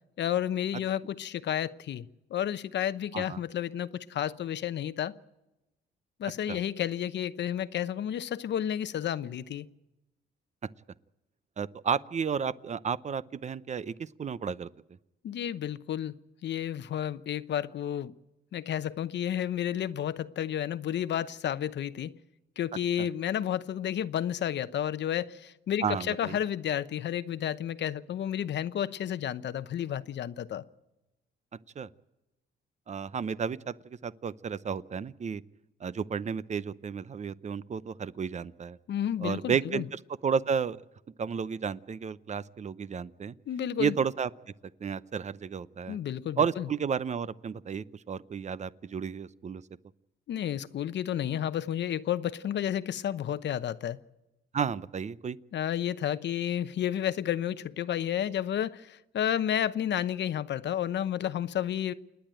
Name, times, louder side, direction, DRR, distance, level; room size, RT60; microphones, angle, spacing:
voice 1, 0.2-2.0 2.3-5.1 6.2-9.7 15.2-16.1 16.4-18.1 18.5-22.1 22.6-30.6 38.9-39.8 43.5-43.9 45.9-46.7 50.3-54.0 55.5-61.9, left 10 dB, 65° left, 0.9 m, -31 dB
voice 2, 11.6-14.7 23.0-23.1 25.8-26.4 31.8-31.9 32.9-35.4 35.8-38.8 39.2-40.8 41.2-43.3 43.8-44.3 44.8-46.0 46.4-49.6 54.5-55.4, right 6 dB, 35° right, 0.7 m, -32 dB
28.5 x 10.5 x 9.0 m
cardioid pair, 90°, 20 cm